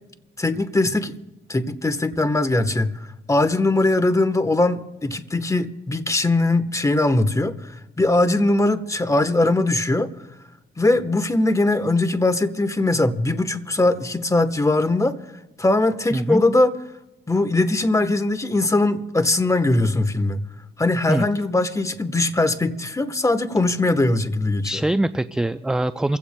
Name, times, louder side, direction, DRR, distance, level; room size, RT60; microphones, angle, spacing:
voice 1, 0.4-1.2 1.5-10.1 10.8-15.2 15.6-16.7 17.3-20.4 20.8-24.7, left 2 dB, 15° left, 1.0 m, -21 dB
voice 2, 16.1-16.4 21.1-21.3 24.6-26.2, right 1 dB, 5° right, 0.4 m, -23 dB
28.0 x 15.5 x 2.2 m
cardioid pair, 90°, 20 cm